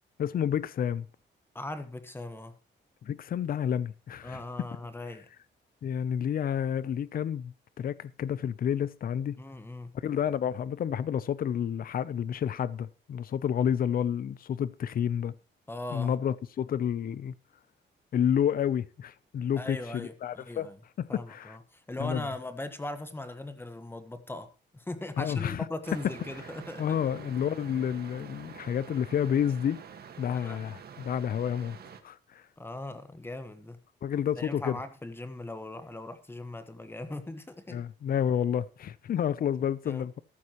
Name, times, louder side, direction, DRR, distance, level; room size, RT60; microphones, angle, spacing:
voice 1, 0.2-1.1 3.0-4.4 5.8-9.4 10.0-15.3 15.9-17.3 18.1-20.7 21.0-21.5 22.0-22.3 25.2-25.6 26.8-29.8 30.2-31.8 32.0-32.4 34.0-34.8 37.7-40.2, left 9 dB, 50° left, 0.7 m, -30 dB
voice 2, 1.5-2.5 4.2-5.3 9.4-9.9 15.7-16.2 19.6-20.8 21.1-27.0 30.3-30.6 32.6-33.8 34.4-37.8 39.8-40.1, left 2 dB, 10° left, 1.3 m, -39 dB
sound 1, 25.8-32.0, right 7 dB, 55° right, 1.7 m, -47 dB
14.0 x 12.5 x 3.0 m
wide cardioid pair, 160°, 19 cm